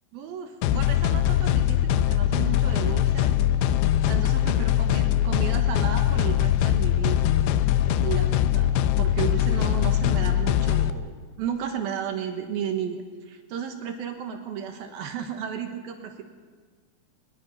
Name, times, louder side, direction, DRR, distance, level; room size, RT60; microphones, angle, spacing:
voice 1, 0.1-3.3 4.1-7.3 8.0-16.2, right 8 dB, 70° right, 5 dB, 2.9 m, -33 dB
sound 1, 0.6-10.9, left 11 dB, 85° left, 2.9 m, -22 dB
23.5 x 21.0 x 5.5 m, 1.5 s
omnidirectional pair, 4.9 m